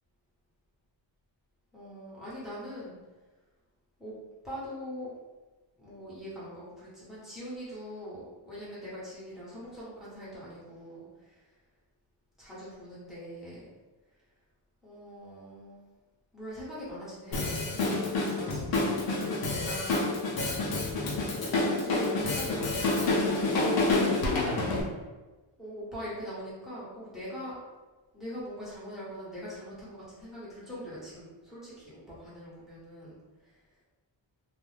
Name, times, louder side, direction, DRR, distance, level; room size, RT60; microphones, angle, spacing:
voice 1, 1.7-3.0 4.0-4.1 4.4-5.1 5.8-11.4 12.4-13.7 14.8-15.8 16.3-20.3 21.4-24.8 25.6-27.6 28.1-33.2, equal, ahead, -10 dB, 1.1 m, -42 dB
Drum kit, 17.3-24.8, left 2 dB, 55° left, 0.7 m, -28 dB
2.5 x 2.2 x 3.2 m, 1.2 s
wide cardioid pair, 150°, 46 cm